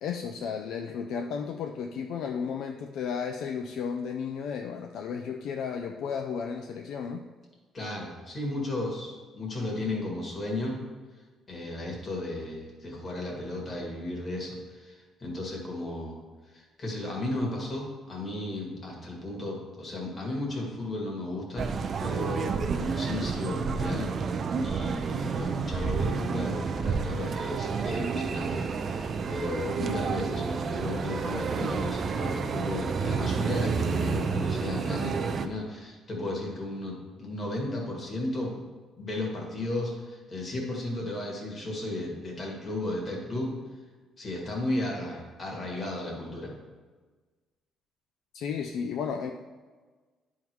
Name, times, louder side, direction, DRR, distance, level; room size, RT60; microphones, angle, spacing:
voice 1, 0.0-7.2 48.3-49.3, left 6 dB, 65° left, 4 dB, 0.4 m, -33 dB
voice 2, 7.7-10.8 11.5-16.2 16.5-21.7 22.0-24.1 24.6-38.5 39.0-43.6 44.2-46.5, left 2 dB, 25° left, -1 dB, 1.7 m, -34 dB
sound 1, 21.6-35.5, right 5 dB, 35° right, 0.4 m, -30 dB
10.5 x 3.7 x 4.6 m, 1.4 s
cardioid pair, 160°, 0 cm